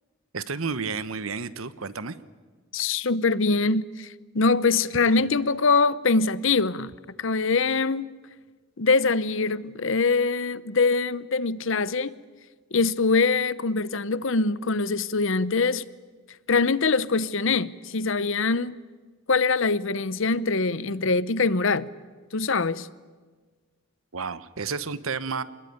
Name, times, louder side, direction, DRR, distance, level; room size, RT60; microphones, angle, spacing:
voice 1, 0.3-2.2 24.1-25.4, right 5 dB, 70° right, 1.1 m, -31 dB
voice 2, 2.7-4.1 4.3-6.9 7.2-8.1 8.8-12.1 12.7-15.9 16.5-18.8 19.3-21.9 22.3-22.9, left 4 dB, 60° left, 0.8 m, -23 dB
26.5 x 21.0 x 9.5 m
head